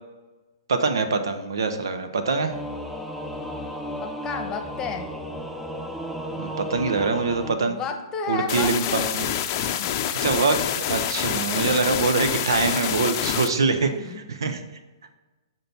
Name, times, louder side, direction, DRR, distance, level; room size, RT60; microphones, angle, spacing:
voice 1, 0.7-2.5 6.4-7.8 8.3-9.3 10.2-14.6, right 4 dB, 65° right, 8 dB, 0.9 m, -24 dB
Singing / Musical instrument, 2.5-7.6, equal, ahead, 0.7 m, -34 dB
voice 2, 4.0-5.1 7.7-9.1 9.6-9.9 13.8-14.8, left 5 dB, 20° left, 6 dB, 1.0 m, -33 dB
sound 1, 8.5-13.5, left 10 dB, 40° left, 0.6 m, -27 dB
7.7 x 5.6 x 4.5 m, 1.2 s
figure-of-eight pair, 115°, 2 cm